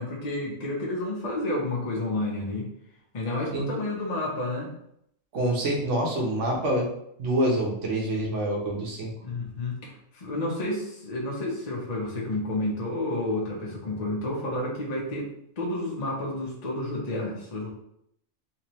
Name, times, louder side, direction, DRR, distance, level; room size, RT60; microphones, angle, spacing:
voice 1, 0.0-2.7 3.1-4.7 9.2-15.3 15.6-17.7, left 1 dB, 40° left, -3 dB, 0.8 m, -30 dB
voice 2, 5.3-6.9 7.2-9.1, right 1 dB, 75° right, -1 dB, 1.3 m, -26 dB
3.3 x 3.2 x 2.9 m, 0.75 s
omnidirectional pair, 1.3 m